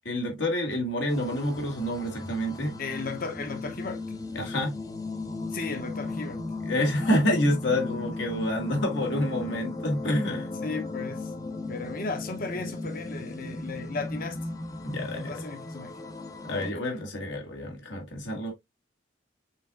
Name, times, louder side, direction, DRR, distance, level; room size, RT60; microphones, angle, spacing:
voice 1, 0.1-2.8 4.3-4.8 6.7-10.5 14.8-15.4 16.4-18.5, left 1 dB, 70° left, 1.7 m, -28 dB
sound 1, 1.1-16.7, left 2 dB, 20° left, 0.6 m, -36 dB
voice 2, 2.8-4.0 5.5-6.4 10.6-11.3 11.7-14.4 15.0-15.9 16.5-16.7, left 3 dB, 50° left, 1.0 m, -35 dB
5.6 x 3.9 x 2.3 m
head